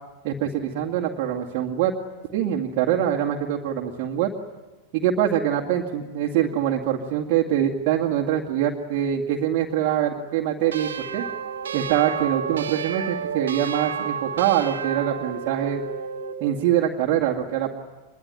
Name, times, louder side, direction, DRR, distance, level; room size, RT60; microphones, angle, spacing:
voice 1, 0.2-1.9 2.3-4.3 4.9-11.3 11.7-15.8 16.4-17.7, right 10 dB, 45° right, -2 dB, 2.3 m, -24 dB
sound 1, 10.7-16.4, right 7 dB, 65° right, 1.6 m, -31 dB
25.5 x 22.5 x 9.3 m, 1.2 s
figure-of-eight pair, 90°, 0 cm